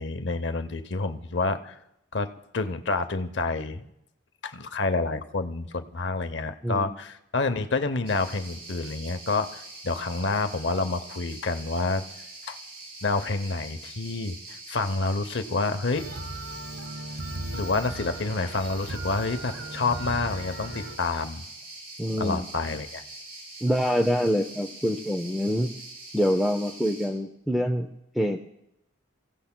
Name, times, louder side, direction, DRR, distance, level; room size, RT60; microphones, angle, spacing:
voice 1, 0.0-1.8 2.1-2.3 2.5-3.9 4.4-12.0 12.5-12.6 13.0-16.1 17.5-21.4 22.2-23.0, left 3 dB, 55° left, 9 dB, 0.7 m, -28 dB
voice 2, 6.6-6.9 22.0-22.4 23.6-25.7 26.1-27.9 28.1-28.4, equal, ahead, 5 dB, 0.4 m, -25 dB
sound 1, 8.1-27.1, right 2 dB, 50° right, 7.2 m, -44 dB
sound 2, 15.9-21.0, right 1 dB, 80° right, 1.5 m, -37 dB
28.0 x 16.0 x 2.2 m, 0.82 s
head